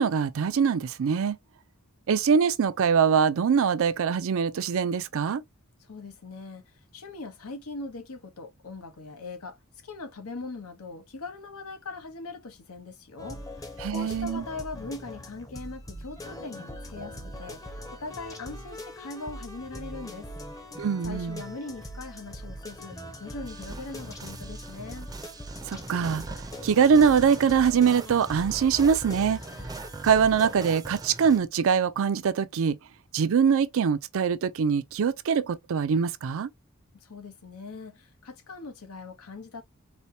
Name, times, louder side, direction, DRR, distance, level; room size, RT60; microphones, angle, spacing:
voice 1, 0.0-1.4 2.1-5.4 13.8-14.4 20.8-21.4 25.7-29.4 30.0-32.8 33.1-36.5, right 6 dB, 65° right, 0.4 m, -23 dB
voice 2, 5.9-9.6 9.8-13.6 13.9-20.3 21.0-25.1 36.9-39.6, left 3 dB, 90° left, 1.0 m, -41 dB
sound 1, 13.2-30.7, equal, 15° left, 0.7 m, -41 dB
sound 2, 23.5-31.4, right 2 dB, 15° right, 0.5 m, -42 dB
4.2 x 2.2 x 2.7 m
head